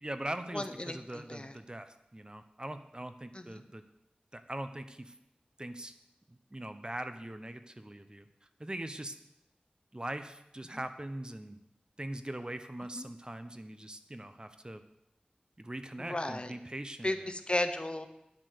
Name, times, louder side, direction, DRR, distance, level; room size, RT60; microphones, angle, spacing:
voice 1, 0.0-3.8 4.3-5.1 5.6-5.9 6.3-8.3 8.6-9.2 9.9-11.6 12.0-14.8 15.6-17.2, right 1 dB, 30° right, 9 dB, 0.8 m, -41 dB
voice 2, 0.5-1.5 3.3-3.6 10.7-10.8 12.9-13.0 16.0-16.5 17.0-18.1, left 1 dB, 35° left, 9 dB, 0.9 m, -35 dB
9.8 x 7.8 x 6.5 m, 0.86 s
wide cardioid pair, 50°, 3 cm